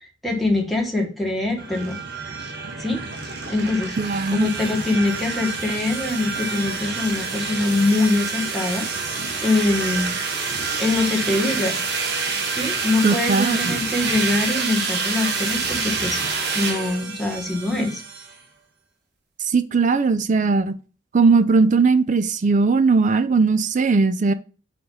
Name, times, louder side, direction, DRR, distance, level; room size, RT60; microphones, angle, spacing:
voice 1, 0.2-2.0 2.8-3.9 4.3-8.9 9.4-10.1 10.8-11.8 12.5-16.2 16.5-18.0, left 2 dB, ahead, 1.5 m, -23 dB
sound 1, 1.6-18.4, right 4 dB, 60° right, 1.5 m, -27 dB
voice 2, 4.0-4.5 13.0-13.7 19.4-20.7 21.1-24.3, right 4 dB, 40° right, 0.4 m, -18 dB
5.0 x 4.8 x 5.4 m
head